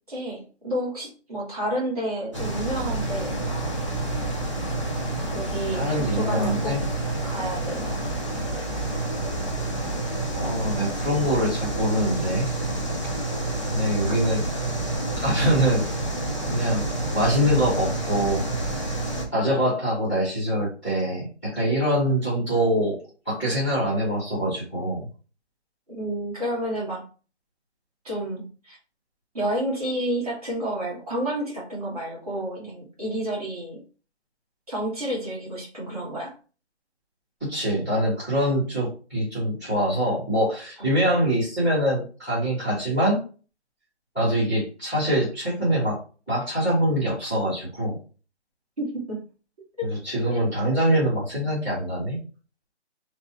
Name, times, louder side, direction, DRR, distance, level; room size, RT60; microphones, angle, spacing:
voice 1, 0.1-3.7 5.3-6.8 7.2-8.7 14.1-14.2 25.9-27.0 28.0-28.8 29.3-33.8 34.7-36.3 40.8-40.9 48.8-49.2 49.8-49.9 50.3-50.4, right 1 dB, 35° right, -5 dB, 1.3 m, -30 dB
sound 1, 2.3-19.2, right 2 dB, 25° left, 0.6 m, -29 dB
voice 2, 5.7-6.8 10.3-12.5 13.7-14.4 15.2-15.9 16.5-16.9 17.1-18.4 19.3-23.0 23.2-25.1 37.5-43.2 44.1-46.0 46.3-48.0 49.8-52.2, equal, 5° right, -15 dB, 1.0 m, -24 dB
3.3 x 2.1 x 3.8 m, 0.37 s
hypercardioid pair, 175°, 35 cm